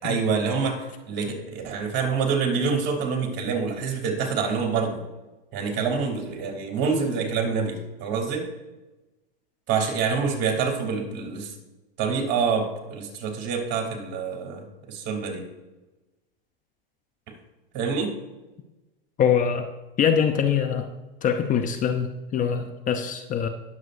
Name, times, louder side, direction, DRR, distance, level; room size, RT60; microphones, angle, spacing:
voice 1, 0.0-5.0 5.5-8.5 9.7-11.5 12.0-15.5 17.7-18.1, right 5 dB, 40° right, 1 dB, 3.3 m, -26 dB
voice 2, 19.2-19.7 20.0-20.9 21.2-23.5, left 7 dB, 25° left, 6 dB, 0.7 m, -23 dB
19.5 x 7.6 x 2.6 m, 1.1 s
hypercardioid pair, 110°, 29 cm